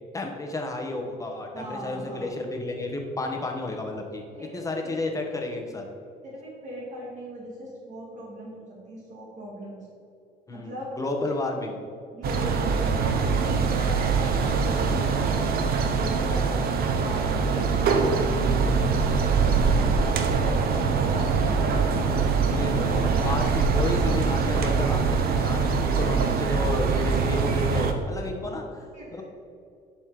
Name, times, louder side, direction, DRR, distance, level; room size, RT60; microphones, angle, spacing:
voice 1, 0.1-4.2 4.5-5.8 10.5-11.8 16.2-16.6 21.1-21.3 22.5-28.6 29.1-29.2, left 2 dB, 20° left, 2 dB, 1.3 m, -32 dB
voice 2, 1.5-2.3 4.3-5.0 6.2-9.9 10.5-10.9 12.1-13.1 13.4-15.5 15.9-20.0 20.4-21.3 22.5-22.8 26.1-26.4 28.4-29.2, equal, 45° right, -4 dB, 2.1 m, -40 dB
sound 1, 12.2-27.9, right 5 dB, 65° right, 0.9 m, -23 dB
11.0 x 4.4 x 4.9 m, 2.4 s
cardioid pair, 110°, 17 cm